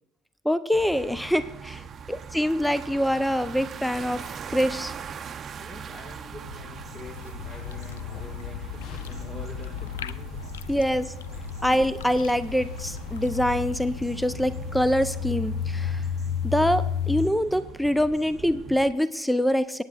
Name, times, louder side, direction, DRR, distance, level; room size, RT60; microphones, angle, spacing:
voice 1, 0.4-1.8 2.1-4.2 4.5-4.9 10.7-11.1 11.6-16.0 16.4-19.8, equal, ahead, 14 dB, 0.5 m, -25 dB
sound 1, 0.7-18.9, right 6 dB, 40° right, 0.7 m, -41 dB
voice 2, 5.5-11.0, left 1 dB, 30° left, 0 dB, 1.7 m, -46 dB
sound 2, 6.4-13.8, left 8 dB, 85° left, 0.3 m, -43 dB
sound 3, 7.4-17.3, left 7 dB, 60° left, 0.8 m, -33 dB
25.5 x 9.1 x 2.4 m, 0.85 s
hypercardioid pair, 75°, 0 cm